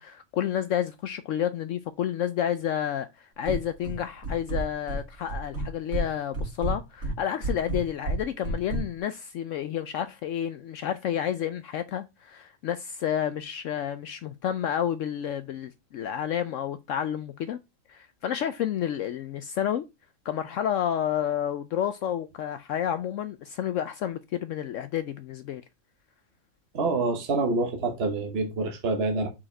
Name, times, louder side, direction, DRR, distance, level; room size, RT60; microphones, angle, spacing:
voice 1, 0.0-17.6 17.9-19.8 20.2-25.6, left 10 dB, 70° left, 0.9 m, -30 dB
sound 1, 3.5-4.0 4.2-5.0 5.3-6.1 6.3-8.8, right 2 dB, 70° right, 2.7 m, -29 dB
voice 2, 26.7-29.3, right 3 dB, 50° right, 1.3 m, -26 dB
5.7 x 4.9 x 4.8 m
omnidirectional pair, 1.5 m